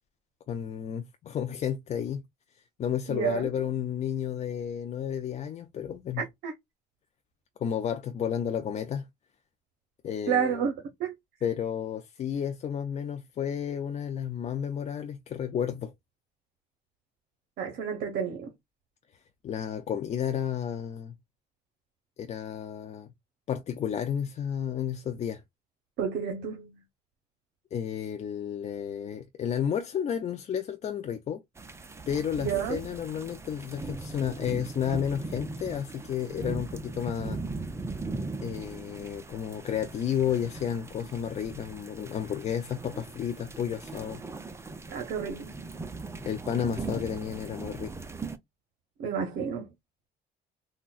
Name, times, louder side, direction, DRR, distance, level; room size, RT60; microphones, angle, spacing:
voice 1, 0.5-2.2 2.8-6.2 7.6-9.1 10.0-10.6 11.4-15.9 19.4-21.1 22.2-23.1 23.5-25.4 27.7-31.4 32.1-37.4 38.4-44.2 46.3-48.1, left 8 dB, 40° left, 0.4 m, -32 dB
voice 2, 3.1-3.5 6.2-6.5 10.3-10.7 11.0-11.1 17.6-18.5 26.0-26.7 32.4-32.8 44.9-45.6 49.0-49.6, right 7 dB, 75° right, 0.8 m, -30 dB
sound 1, 31.6-48.4, right 3 dB, 15° right, 0.5 m, -39 dB
3.8 x 2.1 x 2.4 m
cardioid pair, 110°, 17 cm